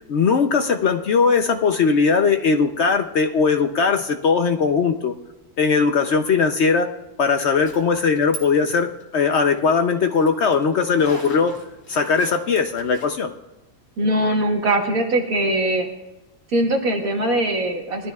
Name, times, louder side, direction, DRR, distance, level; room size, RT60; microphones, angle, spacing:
voice 1, 0.1-5.1 5.6-11.5 11.9-13.3, left 5 dB, 65° left, 6 dB, 0.6 m, -19 dB
Zipper (clothing), 7.6-8.4 8.7-13.1, right 1 dB, 35° left, 2.6 m, -40 dB
voice 2, 14.0-15.9 16.5-18.1, right 1 dB, 55° right, 2 dB, 1.6 m, -21 dB
20.0 x 12.5 x 2.3 m, 1.0 s
omnidirectional pair, 1.8 m